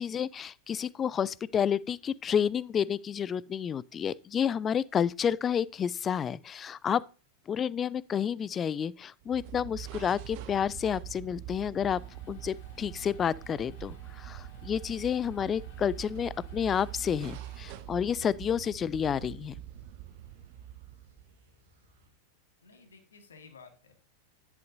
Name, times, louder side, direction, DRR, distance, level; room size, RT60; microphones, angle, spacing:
voice 1, 0.0-7.0 7.5-12.0 12.3-19.5, left 8 dB, 25° left, 0.3 m, -30 dB
sound 1, 9.2-21.4, right 12 dB, 45° right, 0.8 m, -44 dB
sound 2, 11.7-18.2, left 1 dB, 50° left, 4.4 m, -59 dB
sound 3, 16.6-22.1, equal, 60° right, 2.5 m, -65 dB
voice 2, 22.6-23.9, left 5 dB, 70° left, 1.6 m, -54 dB
10.5 x 8.2 x 2.6 m
figure-of-eight pair, 90°, 0 cm